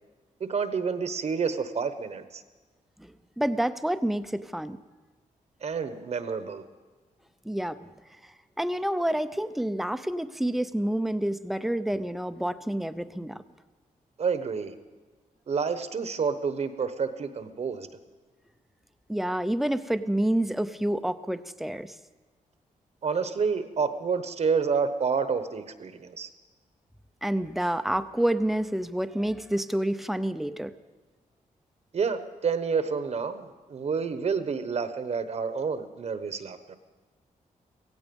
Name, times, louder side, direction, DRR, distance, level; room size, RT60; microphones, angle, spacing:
voice 1, 0.4-2.4 5.6-6.6 14.2-14.7 15.5-17.9 23.0-26.3 31.9-36.8, right 5 dB, 50° right, 10 dB, 1.0 m, -29 dB
voice 2, 3.4-4.8 7.4-7.8 8.6-13.4 19.1-21.9 27.2-30.7, right 1 dB, ahead, 11 dB, 0.6 m, -28 dB
16.0 x 16.0 x 5.3 m, 1.3 s
cardioid pair, 100°, 14 cm